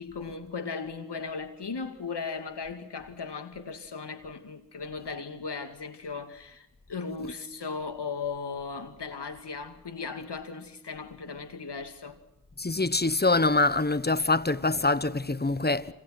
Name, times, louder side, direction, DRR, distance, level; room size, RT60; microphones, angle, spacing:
voice 1, 0.0-12.2, left 5 dB, 85° left, 2.6 m, -37 dB
voice 2, 12.6-15.9, left 2 dB, 25° left, 1.2 m, -25 dB
27.0 x 27.0 x 6.1 m
cardioid pair, 50°, 40 cm